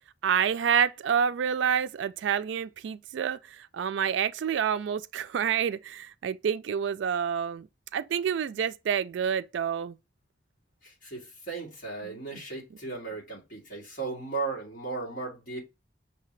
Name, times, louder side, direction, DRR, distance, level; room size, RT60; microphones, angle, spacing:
voice 1, 0.2-7.7 7.9-10.0 12.0-12.2, right 8 dB, 70° right, 0.3 m, -28 dB
voice 2, 10.8-15.6, right 3 dB, 45° left, 2.0 m, -36 dB
5.7 x 2.8 x 3.1 m
head